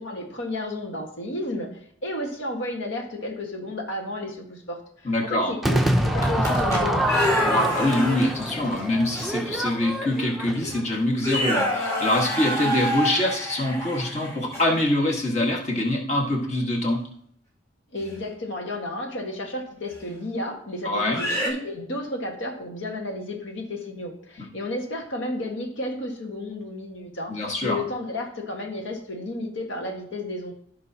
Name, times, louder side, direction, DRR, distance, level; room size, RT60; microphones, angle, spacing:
voice 1, 0.0-7.1 17.9-27.3 27.6-30.5, left 1 dB, 70° left, 1 dB, 1.7 m, -32 dB
voice 2, 5.0-5.5 7.4-17.0 20.8-21.2 27.3-27.9, left 1 dB, 35° left, -1 dB, 1.7 m, -24 dB
Crowd / Fireworks, 5.6-10.9, right 1 dB, ahead, 0.6 m, -25 dB
sound 1, 6.2-8.5 9.1-9.3 10.1-10.2 10.6-10.8 11.2-14.8 18.0-18.2 19.9-20.0 21.1-21.5, equal, 15° left, 1.8 m, -28 dB
14.5 x 5.4 x 2.9 m, 0.64 s
head